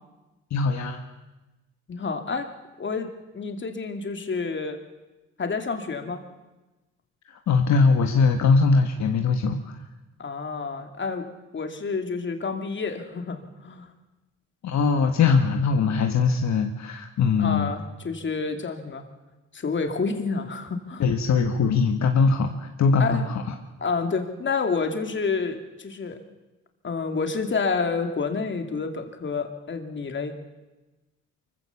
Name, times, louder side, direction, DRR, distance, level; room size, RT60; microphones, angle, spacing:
voice 1, 0.5-1.0 7.3-9.6 14.6-17.7 21.0-23.4, left 5 dB, 65° left, 5 dB, 1.5 m, -21 dB
voice 2, 1.9-2.5 2.8-4.8 5.4-6.2 10.2-11.3 11.5-13.9 17.4-19.0 19.5-21.0 23.0-23.3 23.8-26.2 26.8-30.4, left 4 dB, 40° left, 5 dB, 2.7 m, -29 dB
24.5 x 15.5 x 7.2 m, 1.1 s
cardioid pair, 90°, 30 cm